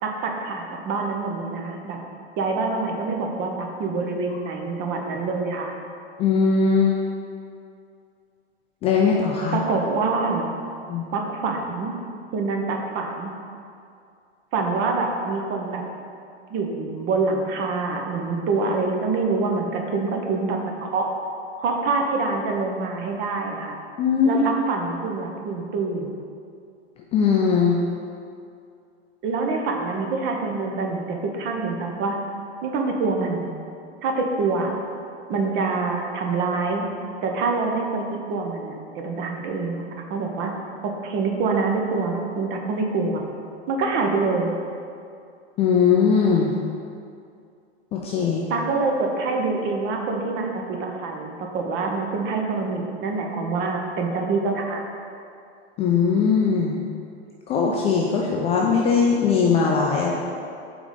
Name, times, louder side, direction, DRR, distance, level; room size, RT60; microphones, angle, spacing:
voice 1, 0.0-2.0 2.4-5.7 9.5-10.5 11.1-11.9 12.3-13.3 14.5-15.8 16.5-21.1 21.6-23.8 24.2-26.2 29.2-32.2 32.6-33.5 34.0-34.7 35.3-36.9 37.2-39.8 40.1-40.5 40.8-43.2 43.7-44.5 48.5-54.8, right 3 dB, 35° right, 2 dB, 0.8 m, -25 dB
voice 2, 6.2-7.0 8.8-9.6 10.9-11.0 24.0-24.4 27.1-27.8 45.6-46.5 47.9-48.4 55.8-56.8 57.5-60.1, left 5 dB, 20° left, -2 dB, 0.3 m, -20 dB
4.9 x 3.9 x 5.0 m, 2.4 s
figure-of-eight pair, 100°, 34 cm